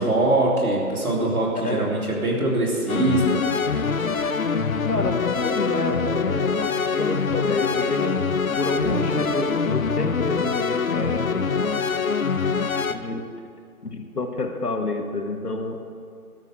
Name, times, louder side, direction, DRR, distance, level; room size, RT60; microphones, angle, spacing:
voice 1, 0.0-3.4, right 2 dB, 65° right, -3 dB, 3.1 m, -22 dB
sound 1, 2.9-13.0, left 5 dB, 60° left, 0.7 m, -24 dB
voice 2, 4.8-5.2 5.4-6.6 6.9-8.2 8.6-11.4 12.9-13.3 13.8-15.8, left 2 dB, 80° left, 3 dB, 1.7 m, -28 dB
12.0 x 6.0 x 7.7 m, 2.2 s
figure-of-eight pair, 165°, 46 cm